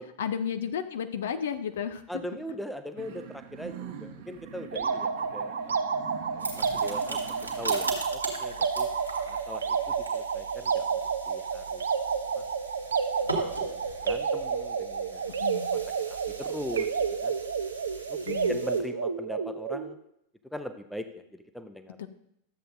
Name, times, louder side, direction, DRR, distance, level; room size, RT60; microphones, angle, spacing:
voice 1, 0.2-2.0 15.3-15.8 18.3-18.6 22.0-22.1, left 8 dB, 60° left, 11 dB, 0.5 m, -33 dB
voice 2, 2.1-5.8 6.5-8.9 9.3-11.0 11.3-11.8 12.3-12.4 13.2-15.3 15.7-15.8 16.1-16.9 17.2-17.3 18.1-20.0 20.5-22.1, equal, ahead, 9 dB, 0.7 m, -40 dB
sound 1, 3.0-8.0, right 7 dB, 50° right, 1.0 m, -44 dB
sound 2, 4.7-19.9, right 6 dB, 70° right, 0.6 m, -30 dB
sound 3, 6.4-18.8, right 2 dB, 85° right, 1.6 m, -41 dB
12.5 x 7.7 x 2.6 m, 0.76 s
figure-of-eight pair, 90°, 0 cm